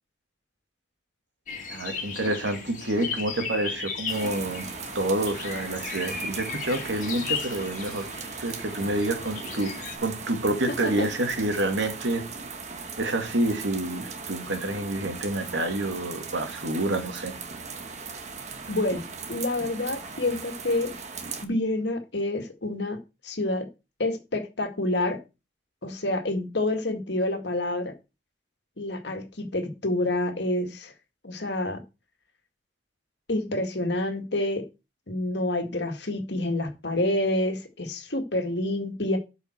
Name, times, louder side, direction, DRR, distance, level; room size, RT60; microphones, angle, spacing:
sound 1, 1.5-10.0, left 5 dB, 45° left, 2.3 m, -36 dB
voice 1, 1.7-4.7 4.9-8.1 8.4-9.7 10.0-12.3 13.0-17.4, right 1 dB, 90° right, 2.2 m, -28 dB
sound 2, 4.1-21.5, right 5 dB, 40° right, 1.2 m, -38 dB
voice 2, 18.7-19.0 19.3-20.9 21.4-23.7 24.0-25.2 25.8-27.9 28.8-30.9 31.2-31.8 33.3-34.6 35.1-39.2, left 1 dB, 70° left, 1.9 m, -28 dB
12.5 x 5.7 x 4.5 m
head